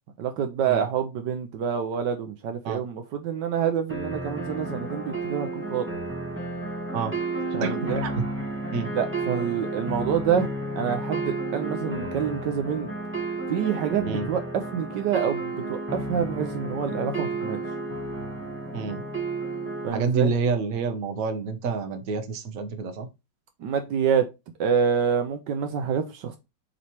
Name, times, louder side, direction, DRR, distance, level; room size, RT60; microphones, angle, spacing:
voice 1, 0.2-5.9 7.6-8.0 8.9-12.9 13.5-17.6 19.8-20.3 23.6-24.3 24.6-26.4, right 7 dB, 75° right, 1.4 m, -27 dB
sound 1, 3.9-19.9, right 2 dB, 10° right, 1.0 m, -32 dB
voice 2, 7.5-8.1 8.7-8.9 14.0-14.3 18.7-19.0 19.9-23.1, right 4 dB, 55° right, 1.3 m, -28 dB
7.0 x 3.2 x 4.4 m
omnidirectional pair, 2.0 m